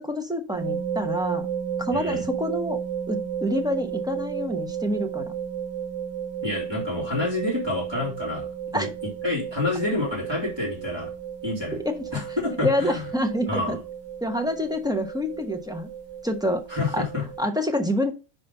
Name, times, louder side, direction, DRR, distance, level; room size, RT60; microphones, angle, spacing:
voice 1, 0.0-1.5 1.8-2.8 3.1-5.2 8.7-8.9 11.8-12.0 12.6-13.8 14.2-15.9 16.2-16.6 16.9-17.0 17.4-18.1, left 1 dB, 5° right, 4 dB, 0.9 m, -27 dB
sound 1, 0.5-17.4, right 8 dB, 60° right, 2.7 m, -33 dB
voice 2, 1.9-2.2 6.4-8.5 8.7-8.9 9.2-11.1 11.4-11.8 12.1-13.0 13.5-13.7 16.7-17.3, left 2 dB, 20° right, -4 dB, 3.3 m, -28 dB
5.7 x 4.7 x 5.4 m, 0.31 s
omnidirectional pair, 1.2 m